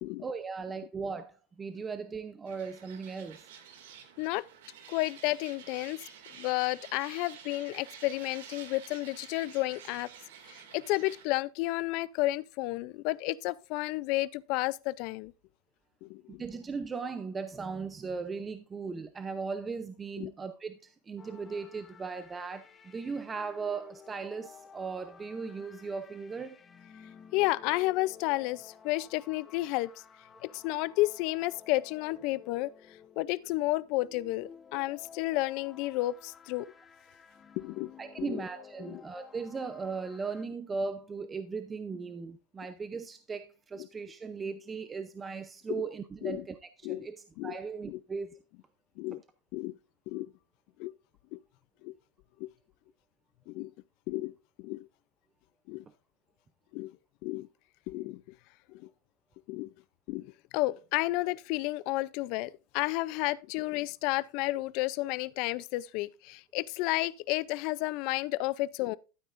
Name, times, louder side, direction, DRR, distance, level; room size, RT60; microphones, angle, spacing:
voice 1, 0.2-3.5 16.4-26.6 38.0-48.4 49.1-49.2, right 5 dB, 15° right, 0.6 m, -38 dB
sound 1, 2.5-11.3, right 7 dB, 85° right, 2.3 m, -50 dB
voice 2, 4.9-6.0 6.4-10.1 10.5-15.3 16.0-16.4 20.2-20.3 27.3-29.9 30.4-32.7 33.2-36.7 37.6-37.9 38.2-38.4 38.8-39.0 43.8-43.9 45.7-45.8 46.2-46.4 46.8-47.1 47.4-47.6 47.9-48.0 49.0-49.2 49.5-49.8 50.1-50.3 50.8-50.9 51.3-51.4 51.8-51.9 52.4-52.5 53.5-53.7 54.1-54.3 54.6-54.9 55.7-55.8 56.7-56.9 57.2-57.5 57.9-58.2 58.7-58.9 59.5-59.7 60.1-69.0, left 19 dB, 55° left, 0.4 m, -32 dB
sound 2, 21.2-40.4, left 6 dB, 20° left, 0.9 m, -54 dB
12.0 x 9.1 x 2.5 m
supercardioid pair, 145°, 0 cm